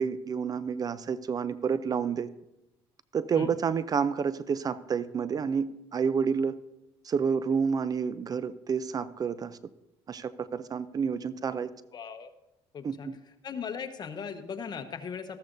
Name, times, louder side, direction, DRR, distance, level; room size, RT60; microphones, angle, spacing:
voice 1, 0.0-2.3 3.1-6.6 7.0-9.6 10.1-11.7 12.8-13.2, right 6 dB, 35° right, 15 dB, 0.5 m, -29 dB
voice 2, 11.9-12.3 12.7-13.1 13.4-15.4, left 6 dB, 40° left, 8 dB, 1.1 m, -38 dB
13.5 x 13.5 x 2.6 m, 0.89 s
supercardioid pair, 85°, 11 cm